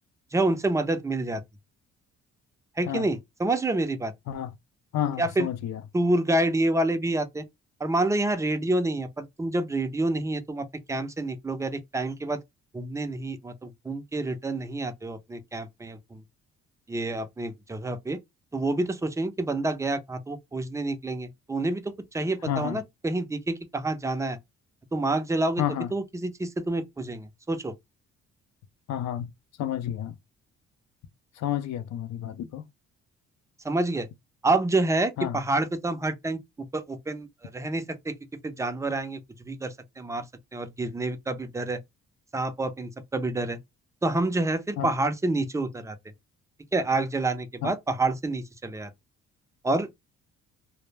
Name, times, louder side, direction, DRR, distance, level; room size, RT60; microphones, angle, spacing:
voice 1, 0.3-1.4 2.8-4.1 5.2-5.5 5.9-7.4 7.8-12.4 12.7-16.2 16.9-18.2 18.5-24.4 24.9-25.6 25.9-27.7 33.6-34.1 34.4-36.4 36.7-37.3 37.5-38.1 38.4-39.2 39.5-40.2 40.5-41.8 42.3-43.6 44.0-45.9 46.7-48.9 49.6-49.9, right 2 dB, 10° right, 0.4 m, -28 dB
voice 2, 4.9-5.8 22.4-22.8 25.6-25.9 28.9-29.3 29.6-30.2 31.4-32.6 35.2-35.4 44.8-44.9 47.6-47.7, left 10 dB, 65° left, 0.5 m, -30 dB
2.1 x 2.0 x 3.2 m
cardioid pair, 90°, 30 cm